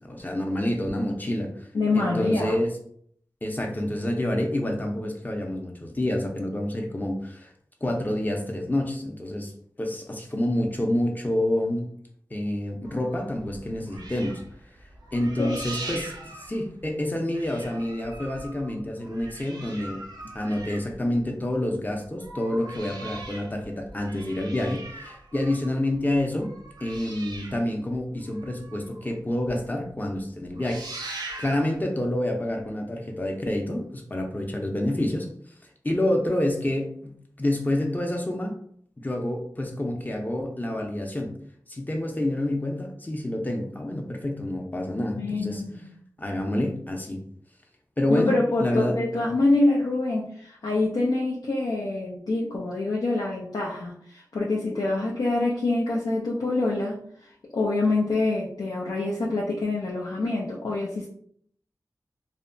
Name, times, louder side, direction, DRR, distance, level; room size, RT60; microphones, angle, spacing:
voice 1, 0.0-1.7 1.9-2.8 3.4-7.5 7.8-9.5 9.8-11.9 12.3-14.4 15.1-20.0 20.3-26.5 26.8-30.9 31.1-35.3 35.8-38.5 39.0-41.3 41.7-45.6 46.2-47.2 48.0-49.0, left 1 dB, 25° left, 2 dB, 0.5 m, -28 dB
voice 2, 1.7-2.6 15.4-15.6 45.1-45.8 48.1-57.0 57.5-61.1, left 2 dB, 85° left, -4 dB, 0.4 m, -26 dB
sound 1, 12.8-17.1 17.3-21.5 22.0-29.1 29.5-29.6 29.9-30.2 30.4-31.8 32.6-32.7, right 2 dB, 85° right, 0.5 m, -41 dB
2.7 x 2.1 x 2.5 m, 0.62 s
wide cardioid pair, 55°, 7 cm